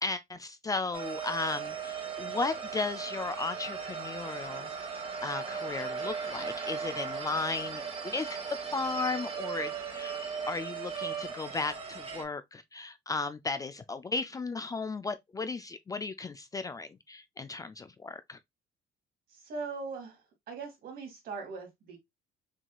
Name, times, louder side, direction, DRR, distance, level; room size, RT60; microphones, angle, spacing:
voice 1, 0.0-4.9 5.2-8.4 8.7-10.1 10.5-18.4, left 3 dB, 20° left, 0.3 m, -35 dB
sound 1, 0.9-12.2, right 6 dB, 35° right, 1.3 m, -37 dB
voice 2, 19.3-20.2 20.5-22.0, right 4 dB, 65° right, 2.2 m, -40 dB
6.0 x 2.7 x 2.3 m
cardioid pair, 110°, 17 cm